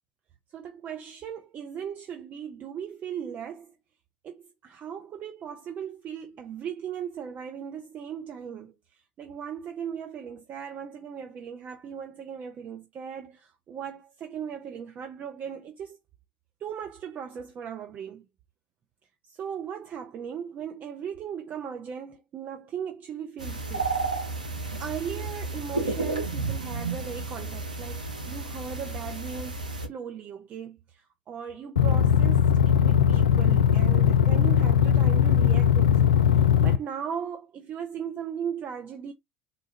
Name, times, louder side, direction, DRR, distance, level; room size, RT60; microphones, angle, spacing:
voice 1, 0.5-3.7 4.2-8.7 9.2-16.0 16.6-18.2 19.3-23.9 24.8-39.1, right 8 dB, 40° right, 0.8 m, -38 dB
sound 1, 23.4-29.9, right 3 dB, 90° right, 0.7 m, -32 dB
sound 2, 31.8-36.8, left 9 dB, 80° left, 0.4 m, -20 dB
3.9 x 2.4 x 2.9 m
figure-of-eight pair, 70°, 4 cm